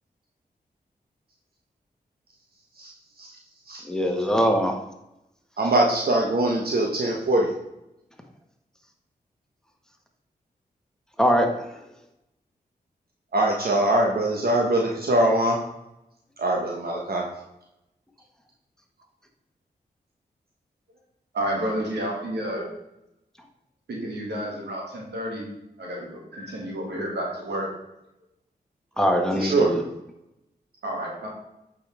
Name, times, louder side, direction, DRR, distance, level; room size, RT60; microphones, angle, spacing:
voice 1, 3.9-4.7 11.2-11.5 29.0-29.8, equal, 5° left, 2 dB, 1.5 m, -21 dB
voice 2, 5.6-7.5 13.3-15.6 16.4-17.3 29.3-29.8, right 1 dB, 65° right, -1 dB, 1.1 m, -22 dB
voice 3, 21.3-22.7 23.9-25.5 25.8-27.7 30.8-31.3, equal, 85° right, -2 dB, 2.2 m, -30 dB
8.5 x 5.2 x 3.5 m, 0.88 s
cardioid pair, 45°, 17 cm